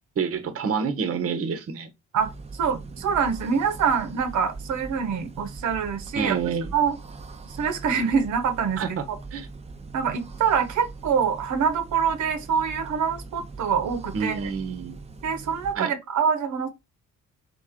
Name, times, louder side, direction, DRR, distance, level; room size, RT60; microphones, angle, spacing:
voice 1, 0.2-1.9 6.2-6.7 8.8-9.0 9.3-9.5 14.1-15.0 15.7-15.9, right 6 dB, 50° right, 1.0 m, -28 dB
voice 2, 2.1-6.4 6.7-6.9 7.5-9.0 9.9-14.4 15.2-16.7, right 6 dB, 75° right, 1.0 m, -25 dB
sound 1, 2.2-15.7, right 3 dB, 20° right, 0.7 m, -41 dB
3.7 x 3.7 x 3.6 m
cardioid pair, 90°, 30 cm